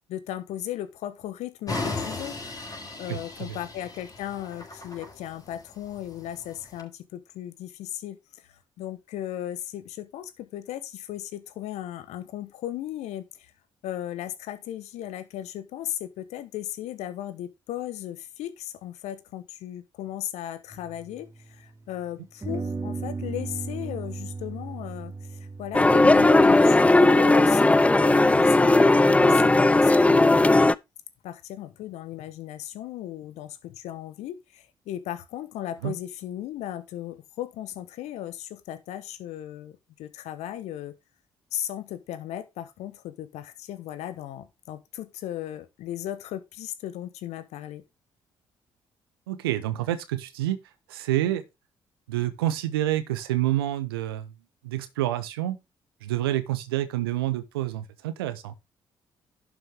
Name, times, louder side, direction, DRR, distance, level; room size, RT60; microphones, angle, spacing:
voice 1, 0.1-2.3 3.0-8.2 8.8-13.5 13.8-30.7 31.2-40.9 41.5-47.8, left 12 dB, 65° left, 1.1 m, -36 dB
sound 1, 1.7-6.8, left 3 dB, 30° left, 4.1 m, -36 dB
sound 2, 20.7-21.9 22.4-27.6, right 4 dB, 25° right, 2.1 m, -37 dB
sound 3, 25.7-30.7, left 2 dB, 10° left, 0.4 m, -17 dB
voice 2, 49.3-50.6 50.9-51.4 52.1-54.3 54.6-55.6 56.0-58.5, right 14 dB, 80° right, 0.9 m, -28 dB
11.0 x 6.2 x 3.5 m
figure-of-eight pair, 45°, 12 cm